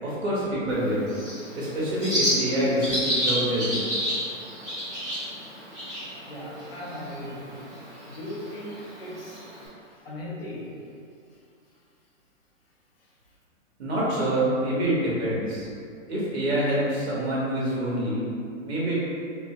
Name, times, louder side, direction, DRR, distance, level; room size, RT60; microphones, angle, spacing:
voice 1, 0.0-1.1 1.5-3.9 13.8-15.7 16.1-18.2 18.6-18.9, right 1 dB, 50° right, -7 dB, 1.3 m, -26 dB
Bird, 0.7-9.7, equal, 10° left, 1.1 m, -31 dB
voice 2, 6.3-7.7 8.1-9.4 9.8-10.7 13.0-13.1, left 1 dB, 45° left, -5 dB, 0.8 m, -38 dB
4.4 x 2.2 x 2.9 m, 2.4 s
hypercardioid pair, 175°, 40 cm